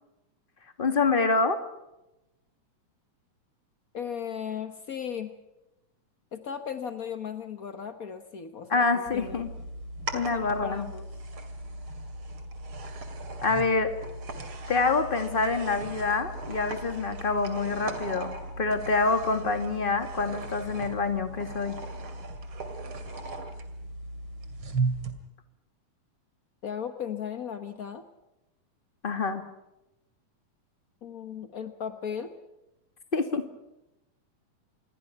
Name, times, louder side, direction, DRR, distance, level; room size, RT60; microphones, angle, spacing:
voice 1, 0.8-1.6 8.7-9.5 10.1-10.9 13.4-13.9 14.7-21.7 29.0-29.4 33.1-33.4, left 3 dB, 20° left, 7 dB, 1.5 m, -26 dB
voice 2, 3.9-5.3 6.3-9.5 10.1-11.1 26.6-28.0 31.0-32.3, left 7 dB, 70° left, 8 dB, 0.8 m, -36 dB
sound 1, 9.1-25.1, right 3 dB, 45° right, 3.0 m, -37 dB
27.5 x 21.5 x 5.8 m, 0.94 s
omnidirectional pair, 3.6 m